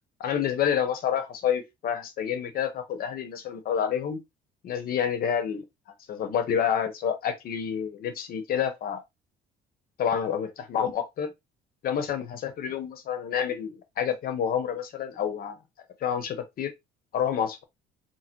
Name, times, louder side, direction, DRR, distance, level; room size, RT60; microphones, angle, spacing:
voice 1, 0.2-4.2 4.6-5.6 6.1-9.0 10.0-11.3 11.8-15.6 16.0-16.7 17.1-17.6, left 8 dB, 60° left, 1.0 m, -28 dB
4.2 x 2.2 x 4.5 m
cardioid pair, 110°, 17 cm